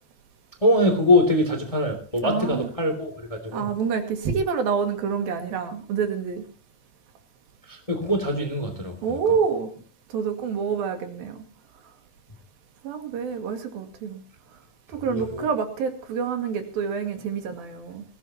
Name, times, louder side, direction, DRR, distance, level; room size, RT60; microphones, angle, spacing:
voice 1, 0.6-3.7 7.7-9.2 15.1-15.5, left 1 dB, 10° left, 6 dB, 1.9 m, -23 dB
voice 2, 2.2-2.7 3.5-6.4 9.0-9.7 10.1-11.4 12.8-14.2 14.9-18.1, right 6 dB, 75° right, 6 dB, 3.8 m, -27 dB
20.5 x 16.5 x 2.9 m, 0.38 s
omnidirectional pair, 4.3 m